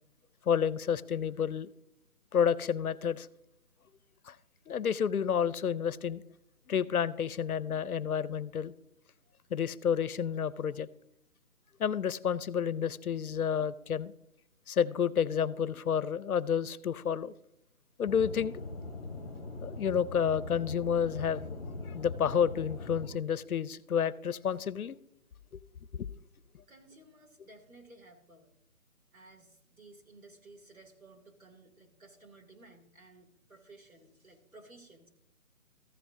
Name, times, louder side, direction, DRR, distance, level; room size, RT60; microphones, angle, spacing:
voice 1, 0.5-1.7 2.3-3.3 4.3-4.4 4.7-6.2 6.7-8.7 9.5-10.9 11.8-14.1 14.7-17.3 18.0-18.6 19.6-21.6 21.9-25.0 26.0-26.1, left 7 dB, 80° left, 0.6 m, -30 dB
Aircraft / Engine, 18.1-23.1, left 3 dB, 25° left, 1.6 m, -41 dB
voice 2, 26.7-28.5 29.1-35.1, right 2 dB, 70° right, 2.7 m, -56 dB
14.0 x 9.8 x 2.6 m
hypercardioid pair, 180°, 44 cm